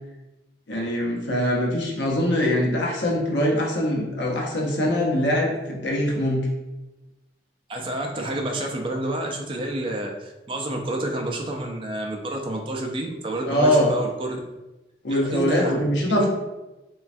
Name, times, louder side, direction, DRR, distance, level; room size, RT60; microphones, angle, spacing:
voice 1, 0.7-6.5 13.4-13.9 15.0-16.3, left 1 dB, 85° left, -2 dB, 0.7 m, -23 dB
voice 2, 7.7-14.4 15.1-16.3, right 1 dB, 30° right, 2 dB, 0.3 m, -29 dB
3.1 x 2.2 x 2.5 m, 1.0 s
head